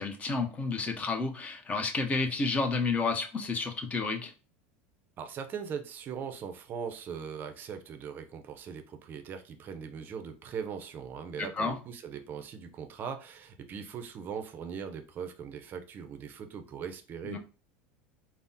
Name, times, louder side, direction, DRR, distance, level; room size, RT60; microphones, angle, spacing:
voice 1, 0.0-4.3 11.4-11.8 17.2-17.4, left 4 dB, 25° left, 0.6 m, -31 dB
voice 2, 5.2-17.4, right 7 dB, 40° right, 0.5 m, -40 dB
3.4 x 2.0 x 2.6 m
supercardioid pair, 110°, 5 cm